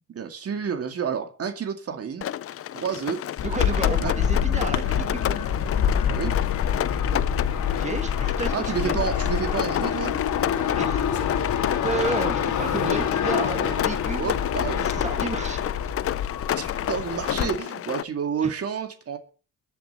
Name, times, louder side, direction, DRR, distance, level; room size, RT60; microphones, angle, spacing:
voice 1, 0.1-2.3 2.7-3.2 4.0-4.1 6.1-6.3 8.5-10.1 14.2-14.8 16.5-19.2, right 7 dB, 50° right, 7 dB, 2.2 m, -29 dB
Rain, 2.2-18.0, left 11 dB, 50° left, 0.6 m, -31 dB
sound 1, 3.4-17.5, left 8 dB, 75° left, 2.4 m, -26 dB
voice 2, 3.4-5.4 7.8-9.0 10.8-11.0 11.8-14.3 14.8-15.7 18.4-18.5, right 4 dB, 25° right, 6 dB, 2.0 m, -31 dB
22.5 x 9.0 x 4.5 m, 0.36 s
cardioid pair, 90°, 30 cm